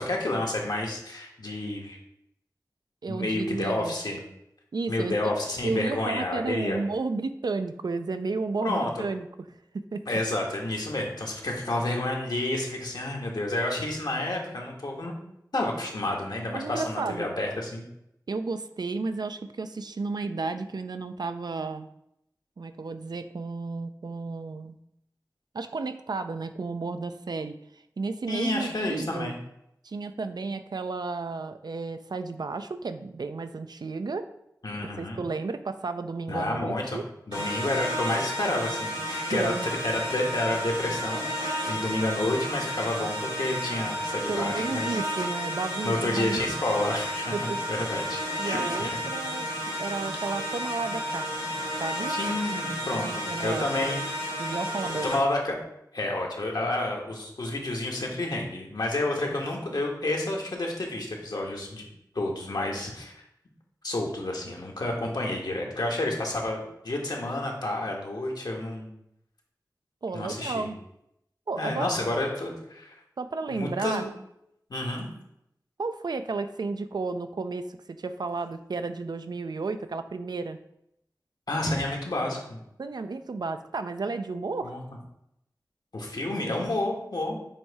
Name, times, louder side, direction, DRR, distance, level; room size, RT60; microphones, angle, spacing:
voice 1, 0.0-2.0 3.1-4.2 4.9-6.8 8.6-9.0 10.1-15.1 15.5-17.8 28.3-29.4 34.6-35.2 36.3-37.0 37.3-45.0 45.8-49.0 49.7-49.8 52.1-54.3 55.0-55.6 55.9-61.8 62.1-63.2 63.8-68.9 70.1-70.7 71.6-72.9 73.5-74.1 74.7-75.1 81.5-82.6 84.6-84.8 85.9-87.4, left 1 dB, 75° left, 0 dB, 1.3 m, -30 dB
voice 2, 3.0-3.9 4.7-5.3 5.6-9.3 9.7-10.1 16.5-17.3 18.3-21.9 22.6-24.8 25.5-27.6 28.0-29.3 29.8-34.3 35.0-37.0 39.3-39.7 44.3-46.5 47.3-47.6 48.4-49.5 49.8-51.3 51.8-52.1 52.9-54.0 54.4-55.2 70.0-70.8 71.5-71.9 73.2-74.0 75.8-80.6 82.8-84.7, right 3 dB, 70° right, 10 dB, 0.4 m, -32 dB
sound 1, 37.3-55.2, equal, 90° right, 2.0 m, -32 dB
7.3 x 2.7 x 4.7 m, 0.79 s
wide cardioid pair, 70°, 7 cm